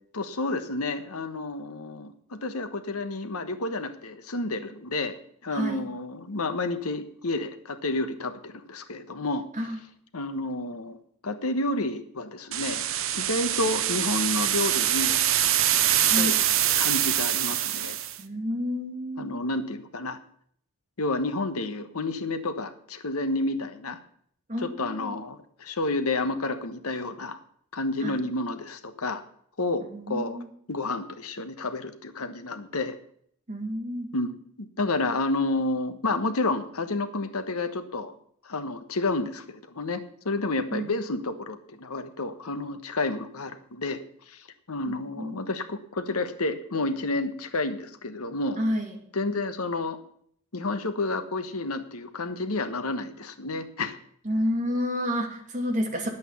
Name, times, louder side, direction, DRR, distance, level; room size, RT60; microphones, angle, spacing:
voice 1, 0.1-9.5 10.1-11.0 11.2-12.8 13.1-15.2 16.0-16.4 16.8-18.0 19.2-20.2 21.0-24.0 24.6-27.4 27.7-29.2 29.6-30.4 30.7-33.0 34.1-38.1 38.4-48.6 49.1-50.0 50.5-54.0, left 2 dB, 75° left, 9 dB, 1.2 m, -30 dB
voice 2, 5.5-5.8 9.6-9.8 16.1-16.3 18.2-19.3 24.5-25.2 28.0-28.2 29.9-30.5 33.5-34.1 40.7-40.9 44.9-45.4 48.6-48.9 54.2-56.1, equal, 35° right, 1 dB, 2.3 m, -30 dB
sound 1, 12.5-18.2, right 11 dB, 60° right, 0.8 m, -24 dB
10.5 x 8.3 x 7.0 m, 0.64 s
head